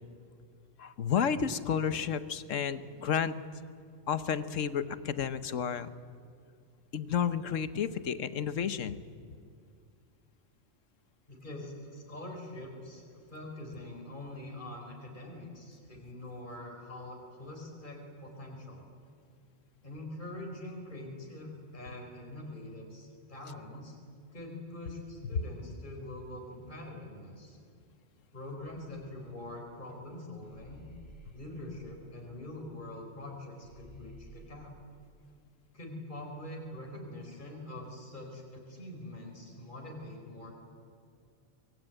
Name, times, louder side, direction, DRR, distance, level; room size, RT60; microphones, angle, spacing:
voice 1, 0.8-3.4 4.1-5.9 6.9-9.0, left 7 dB, 85° left, 13 dB, 1.4 m, -31 dB
voice 2, 11.3-18.8 19.8-24.0 24.3-27.6 28.3-30.8 31.3-34.7 35.7-40.5, left 1 dB, 40° left, 0 dB, 4.6 m, -44 dB
sound 1, 28.6-30.0 30.4-33.3 33.6-34.5, equal, 20° left, 3.4 m, -55 dB
24.5 x 22.5 x 9.0 m, 2.2 s
omnidirectional pair, 1.3 m